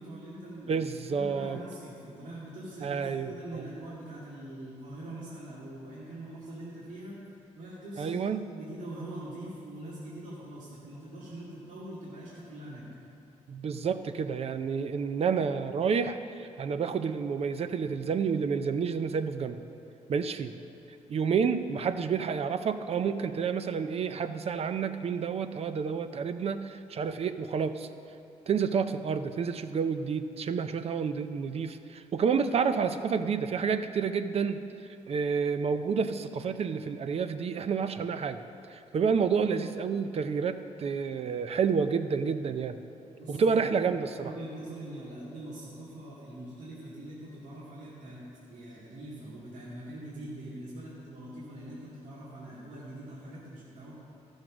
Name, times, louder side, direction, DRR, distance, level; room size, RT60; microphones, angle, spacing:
voice 1, 0.0-7.2 7.6-8.2 8.5-12.9 43.2-43.8 44.2-53.9, right 1 dB, 75° right, -8 dB, 2.2 m, -43 dB
voice 2, 0.7-1.6 2.8-3.7 8.0-8.4 13.5-19.6 20.1-20.5 21.1-27.9 28.5-34.6 35.1-38.4 38.7-42.8 43.3-44.3, right 6 dB, 50° right, 10 dB, 0.6 m, -29 dB
14.0 x 6.4 x 6.1 m, 2.7 s
cardioid pair, 110°, 13 cm